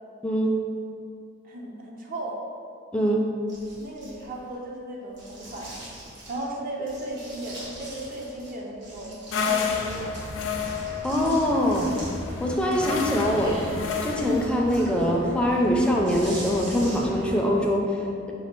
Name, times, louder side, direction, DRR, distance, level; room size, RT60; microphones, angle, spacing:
voice 1, 1.4-2.4 3.8-5.7 6.3-9.1 9.4-10.1, right 1 dB, 45° right, -1 dB, 0.5 m, -36 dB
voice 2, 2.9-3.2 11.0-11.9 12.4-13.6 14.0-18.3, equal, 5° left, -1 dB, 0.4 m, -23 dB
sound 1, 3.5-4.5 5.1-6.5 6.9-8.5 8.8-12.3 12.7-17.3, right 1 dB, 65° right, 1.3 m, -44 dB
sound 2, 9.3-14.5, left 5 dB, 80° left, 0.4 m, -30 dB
sound 3, 9.7-17.4, equal, 80° right, 0.8 m, -39 dB
4.1 x 2.4 x 4.4 m, 2.4 s
head